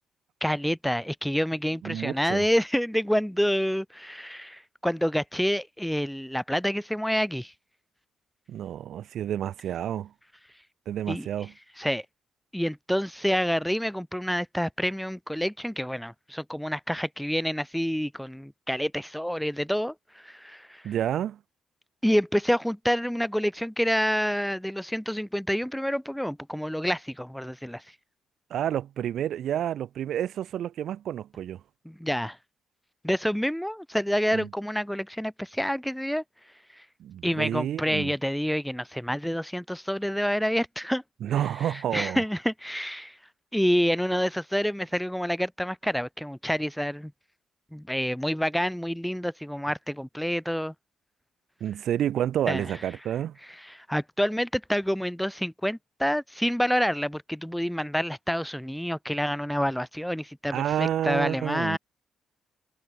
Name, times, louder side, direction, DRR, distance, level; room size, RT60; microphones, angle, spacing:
voice 1, 0.4-7.5 11.1-11.3 11.8-12.1 12.5-19.9 20.2-20.8 22.0-27.8 31.9-32.4 33.0-36.2 37.2-41.0 41.9-43.1 43.5-47.1 47.7-50.7 52.5-52.6 53.7-61.8, equal, ahead, 5.3 m, -28 dB
voice 2, 1.8-2.5 8.5-10.1 10.8-11.5 20.8-21.4 28.5-31.6 34.3-34.5 37.0-38.1 41.2-42.2 51.6-53.4 60.5-61.8, right 10 dB, 70° right, 5.0 m, -29 dB
cardioid pair, 90°, 0 cm